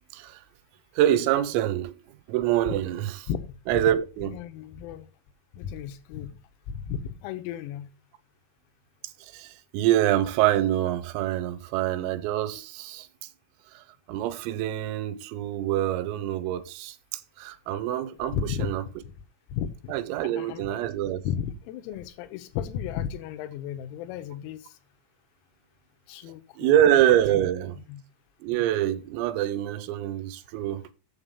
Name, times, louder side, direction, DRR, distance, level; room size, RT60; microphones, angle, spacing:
voice 1, 1.0-1.9 2.3-3.1 3.7-4.3 9.3-13.1 14.1-17.0 17.4-18.8 19.9-21.2 26.6-27.7 28.4-30.8, right 12 dB, 85° right, 3.4 m, -25 dB
voice 2, 3.3-3.8 4.2-5.1 5.5-6.4 6.7-7.9 18.3-18.7 19.5-19.7 20.3-20.9 21.3-24.7 26.1-26.8 27.8-28.0, left 9 dB, 90° left, 3.7 m, -34 dB
7.8 x 7.4 x 5.3 m
omnidirectional pair, 6.0 m